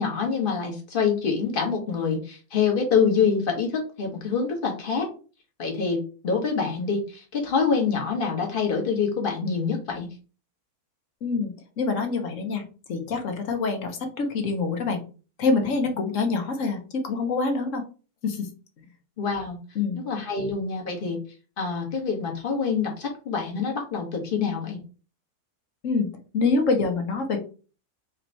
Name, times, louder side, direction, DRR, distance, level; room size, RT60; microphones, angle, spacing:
voice 1, 0.0-5.1 5.6-10.1 19.2-19.6 20.0-21.2 21.6-24.8, left 5 dB, 35° left, 1 dB, 1.4 m, -26 dB
voice 2, 11.2-12.6 12.9-15.0 15.4-16.8 17.0-17.8 18.2-18.5 19.7-20.0 25.8-26.1 26.3-27.4, left 4 dB, 55° left, 5 dB, 1.3 m, -25 dB
4.4 x 3.0 x 4.0 m, 0.36 s
omnidirectional pair, 1.6 m